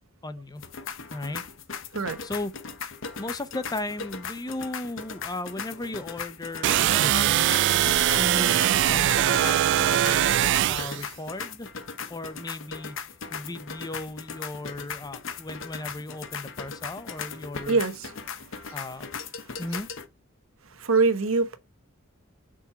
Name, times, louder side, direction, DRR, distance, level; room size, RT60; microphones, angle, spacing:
voice 1, 0.2-0.6 1.1-1.4 2.2-2.5 3.2-11.7 12.1-17.8 18.7-19.1 19.6-19.9, left 2 dB, 20° left, 0.7 m, -36 dB
sound 1, 0.6-20.1, left 6 dB, 70° left, 1.0 m, -38 dB
sound 2, 6.6-11.0, right 12 dB, 60° right, 0.3 m, -22 dB
voice 2, 17.7-18.8 19.4-19.6 20.6-21.6, right 4 dB, 85° right, 1.1 m, -26 dB
6.2 x 4.3 x 5.7 m
head